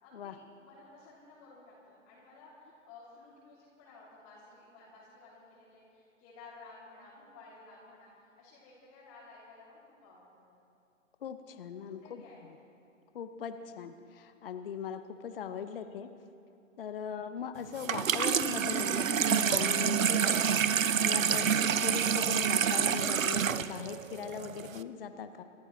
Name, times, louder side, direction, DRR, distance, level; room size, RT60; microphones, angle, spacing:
voice 1, 0.0-10.6 11.9-12.4 21.4-21.6, left 3 dB, 25° left, -8 dB, 2.8 m, -55 dB
voice 2, 11.2-12.2 13.1-16.1 16.8-25.4, left 7 dB, 45° left, 10 dB, 0.8 m, -40 dB
Water tap faucet / Sink (filling or washing), 17.8-24.8, right 8 dB, 75° right, 0.7 m, -28 dB
28.0 x 13.5 x 3.2 m, 2.5 s
figure-of-eight pair, 135°, 40 cm